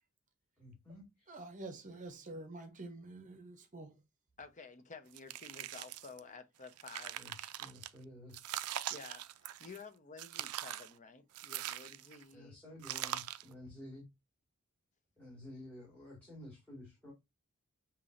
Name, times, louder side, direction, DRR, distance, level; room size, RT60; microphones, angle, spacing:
voice 1, 0.6-1.4 7.1-8.5 12.3-14.0 15.2-17.1, left 1 dB, 10° left, 1.9 m, -52 dB
voice 2, 1.3-3.9, right 2 dB, 35° right, 0.7 m, -47 dB
voice 3, 4.4-7.2 8.9-12.6, left 4 dB, 35° left, 0.7 m, -52 dB
sound 1, 5.1-6.2 6.6-7.9 8.3-9.8 10.2-10.9 11.3-12.2 12.8-13.5, right 12 dB, 80° right, 0.4 m, -42 dB
6.7 x 2.9 x 2.5 m
head